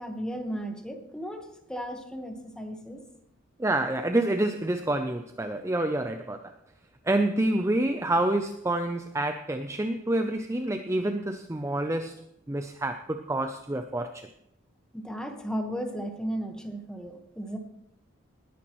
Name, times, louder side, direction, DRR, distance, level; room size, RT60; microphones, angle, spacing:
voice 1, 0.0-3.0 14.9-17.6, equal, 5° left, 1.3 m, -35 dB
voice 2, 3.6-6.5 7.0-12.2 12.5-14.3, right 1 dB, 15° right, 0.5 m, -28 dB
19.5 x 10.5 x 3.1 m
head